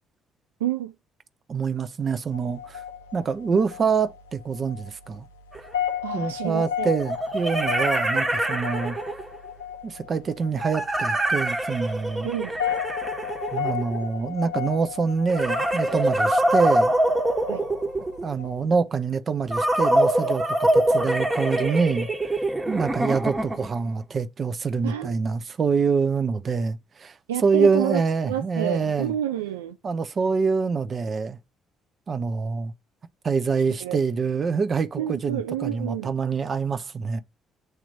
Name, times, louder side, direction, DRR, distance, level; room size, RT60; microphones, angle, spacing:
voice 1, 0.6-0.9 3.5-3.6 6.0-6.9 12.2-12.6 17.5-17.6 24.8-25.2 27.3-29.8 33.8-34.0 35.0-36.1, right 11 dB, 80° right, 0.3 m, -29 dB
voice 2, 1.5-2.8 3.1-5.3 6.1-9.0 9.8-12.3 13.5-16.9 18.2-22.1 22.7-27.1 27.4-29.1 29.8-31.4 32.1-32.7 33.2-37.2, right 5 dB, 45° right, 0.7 m, -25 dB
sound 1, 2.3-18.8, left 9 dB, 85° left, 0.6 m, -35 dB
sound 2, 5.5-5.6 7.0-9.4 10.6-14.1 15.3-18.3 19.5-23.8, right 1 dB, 25° right, 1.4 m, -24 dB
8.1 x 3.0 x 4.0 m
figure-of-eight pair, 45°, 0 cm